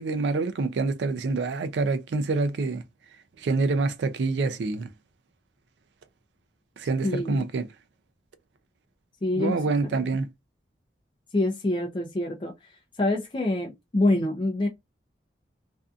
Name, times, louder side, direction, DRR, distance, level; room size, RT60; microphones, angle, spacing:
voice 1, 0.0-2.8 3.4-4.9 6.8-7.7 9.3-10.3, right 3 dB, 85° right, 0.4 m, -26 dB
voice 2, 7.0-7.4 9.2-9.6 11.3-12.5 13.0-14.7, left 2 dB, 30° left, 0.4 m, -25 dB
2.5 x 2.3 x 2.4 m
head